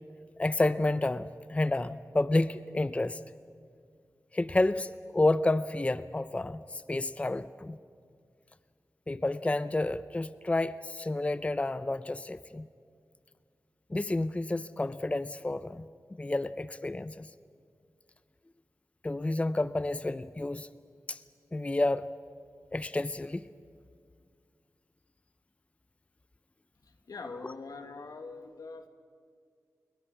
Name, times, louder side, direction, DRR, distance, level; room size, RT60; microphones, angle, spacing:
voice 1, 0.4-3.2 4.3-7.8 9.1-12.7 13.9-15.9 16.2-17.3 19.0-20.7 21.1-21.2 21.5-22.1 22.7-23.5, left 2 dB, 20° left, 14 dB, 0.5 m, -30 dB
voice 2, 26.8-28.9, left 4 dB, 80° left, 7 dB, 1.6 m, -43 dB
29.5 x 22.0 x 5.9 m, 2.2 s
wide cardioid pair, 85°, 6 cm